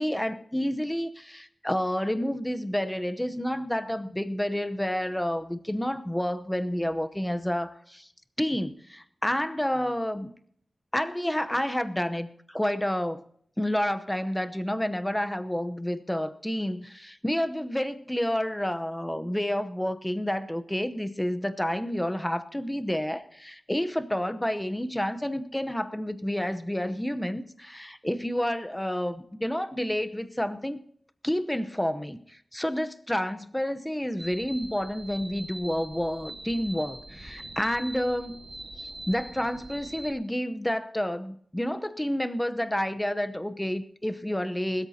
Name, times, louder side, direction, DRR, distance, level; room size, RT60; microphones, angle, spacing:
voice 1, 0.0-8.1 8.4-10.3 10.9-13.2 13.6-30.8 31.2-38.4 38.8-44.9, equal, 10° left, 12 dB, 0.8 m, -29 dB
sound 1, 34.2-40.1, right 2 dB, 25° right, 3.7 m, -43 dB
20.5 x 13.5 x 2.8 m, 0.62 s
wide cardioid pair, 100°, 0 cm